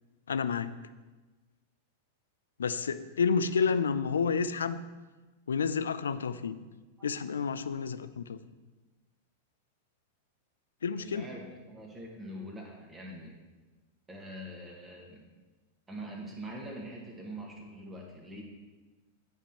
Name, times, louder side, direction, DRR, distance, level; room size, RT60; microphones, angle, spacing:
voice 1, 0.3-0.7 2.6-4.8 5.5-6.6 7.0-8.4 10.8-11.2, left 5 dB, 80° left, 13 dB, 0.3 m, -30 dB
voice 2, 7.0-7.4 10.9-13.4 14.1-15.2 15.9-18.4, right 1 dB, 15° right, -1 dB, 1.6 m, -44 dB
9.0 x 3.6 x 4.3 m, 1.2 s
hypercardioid pair, 95°, 0 cm